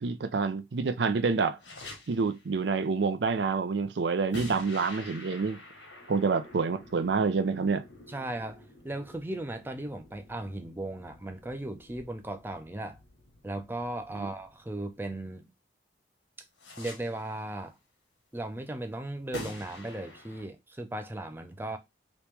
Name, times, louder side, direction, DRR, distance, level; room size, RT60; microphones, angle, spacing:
voice 1, 0.0-1.6 2.1-5.6 6.1-7.8, right 4 dB, 70° right, 0.5 m, -27 dB
sound 1, 1.6-2.5 4.3-15.2 16.6-17.4 19.3-20.5, left 2 dB, 80° left, 1.3 m, -48 dB
voice 2, 8.1-13.0 13.4-15.5 16.8-17.8 18.3-21.8, right 1 dB, 10° right, 0.4 m, -37 dB
3.0 x 2.9 x 3.4 m
head